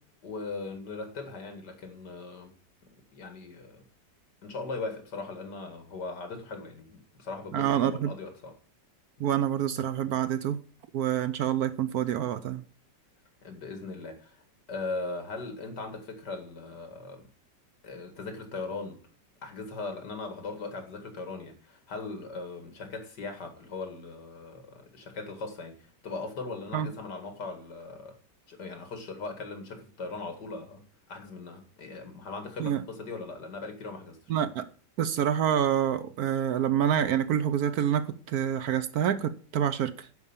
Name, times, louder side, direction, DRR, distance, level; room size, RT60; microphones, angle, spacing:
voice 1, 0.2-2.5 3.1-3.8 4.4-8.5 9.2-9.3 13.4-14.4 14.7-17.3 17.8-19.0 19.4-28.2 28.5-30.8 31.1-34.3, left 3 dB, 70° left, 2.7 m, -39 dB
voice 2, 7.5-8.1 9.2-10.6 10.9-12.6 26.7-26.9 32.6-32.8 34.3-34.7 35.0-40.1, right 10 dB, 70° right, 1.1 m, -27 dB
11.0 x 5.5 x 7.2 m
omnidirectional pair, 1.9 m